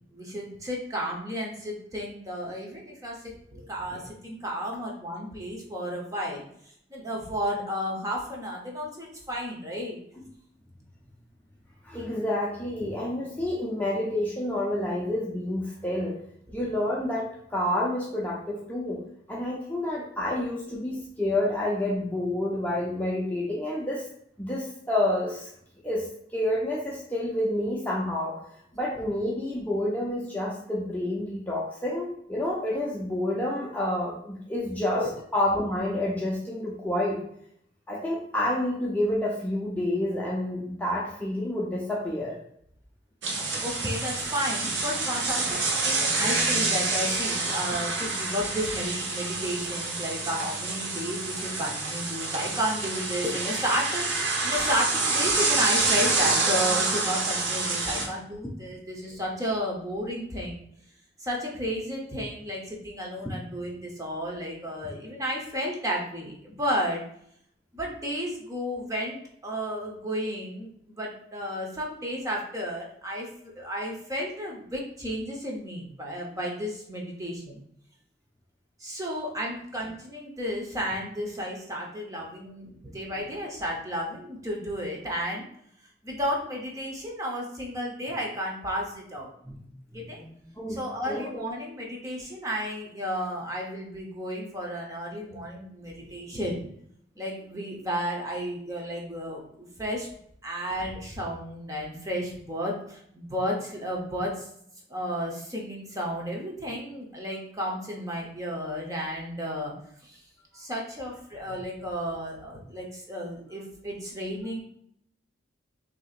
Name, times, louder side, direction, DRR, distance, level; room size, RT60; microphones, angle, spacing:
voice 1, 0.1-6.5 6.9-10.0 12.8-12.9 34.9-35.1 43.6-60.6 61.2-67.0 67.7-77.6 78.8-85.5 86.0-89.3 89.9-90.2 90.7-96.7 97.2-100.1 100.4-104.5 104.9-109.7 110.0-110.2 110.5-114.6, equal, 20° right, -2 dB, 0.9 m, -32 dB
voice 2, 11.8-16.1 16.5-19.0 19.3-24.0 24.4-25.5 25.8-26.1 26.3-28.3 28.7-35.1 35.3-37.2 37.9-42.3 89.4-89.6 90.1-90.3 90.6-90.8 91.1-91.4, left 1 dB, 10° left, -4 dB, 0.6 m, -29 dB
sound 1, 43.2-58.1, right 3 dB, 90° right, 1.0 m, -27 dB
6.1 x 2.8 x 2.5 m, 0.68 s
head